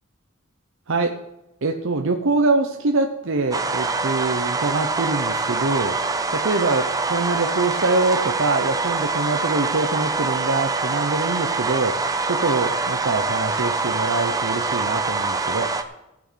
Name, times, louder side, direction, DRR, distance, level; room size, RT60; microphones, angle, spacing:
voice 1, 0.9-1.2 1.6-6.0 6.3-15.7, right 3 dB, 65° right, 4 dB, 0.8 m, -24 dB
sound 1, 3.5-15.8, right 3 dB, 15° right, 0.7 m, -24 dB
16.0 x 6.1 x 6.3 m, 0.93 s
head